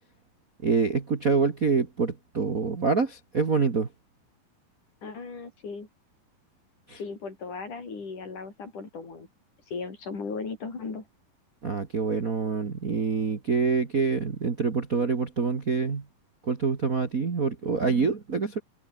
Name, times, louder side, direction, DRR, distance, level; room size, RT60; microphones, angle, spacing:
voice 1, 0.6-3.9 6.9-7.0 11.6-16.0 16.4-18.6, right 4 dB, 35° right, 1.6 m, -26 dB
voice 2, 5.0-5.9 6.9-9.3 9.7-11.1, left 4 dB, 65° left, 7.2 m, -37 dB
omnidirectional pair, 3.9 m